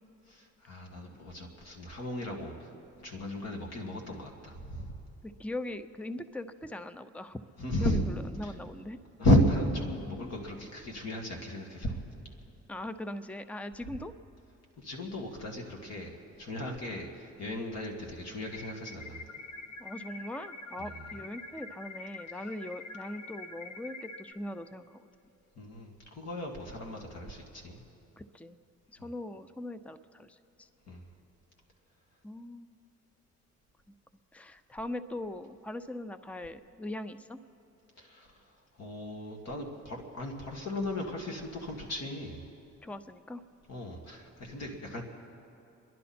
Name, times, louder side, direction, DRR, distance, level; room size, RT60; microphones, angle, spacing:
voice 1, 0.3-2.7 3.0-4.9 7.6-8.0 8.4-8.5 9.2-12.0 14.8-19.2 20.8-21.1 25.6-27.8 29.0-29.1 30.9-31.1 38.0-42.4 43.7-45.0, left 1 dB, 60° left, 1 dB, 2.1 m, -34 dB
voice 2, 5.2-7.4 7.8-9.0 12.7-14.1 19.8-25.1 28.2-28.6 28.9-30.7 32.2-32.7 34.3-37.4 42.8-43.4, left 1 dB, 5° left, 11 dB, 0.6 m, -41 dB
sound 1, 18.5-24.3, left 2 dB, 75° left, 1.2 m, -45 dB
29.5 x 11.0 x 4.3 m, 2.7 s
cardioid pair, 90°, 30 cm